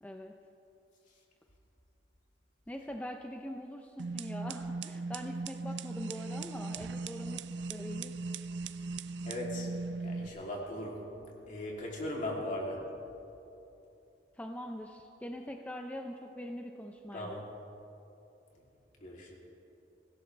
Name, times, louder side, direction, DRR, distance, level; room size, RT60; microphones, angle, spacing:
voice 1, 0.0-0.3 2.7-7.4 7.7-8.1 14.4-17.4, equal, 10° left, 3 dB, 0.6 m, -43 dB
sound 1, 4.0-10.3, right 3 dB, 75° right, 0.5 m, -38 dB
voice 2, 9.2-9.7 10.0-11.1 11.5-12.9 17.1-17.5 18.5-18.6 19.0-19.3, left 1 dB, 45° left, -2 dB, 2.9 m, -38 dB
24.0 x 16.5 x 3.3 m, 2.9 s
head